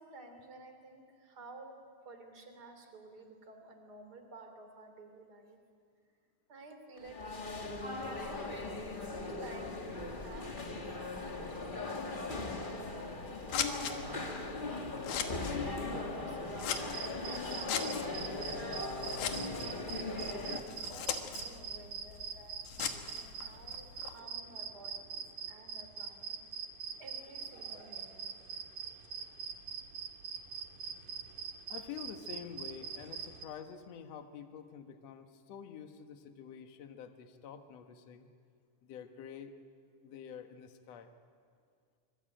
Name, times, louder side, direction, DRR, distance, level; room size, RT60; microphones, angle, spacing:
voice 1, 0.0-1.7 2.0-5.6 6.5-8.4 9.0-13.4 14.1-15.1 15.6-19.2 19.7-26.4 27.0-28.3, right 2 dB, 30° right, 6 dB, 3.4 m, -53 dB
sound 1, 7.0-20.6, left 2 dB, 25° left, 1.2 m, -39 dB
Scissors, 12.8-24.2, left 8 dB, 80° left, 3.1 m, -41 dB
sound 2, 16.7-33.5, right 7 dB, 80° right, 3.3 m, -43 dB
voice 2, 31.7-38.3 38.8-39.6 40.0-41.1, left 7 dB, 60° left, 6 dB, 2.4 m, -48 dB
26.0 x 25.5 x 9.1 m, 2.2 s
omnidirectional pair, 3.6 m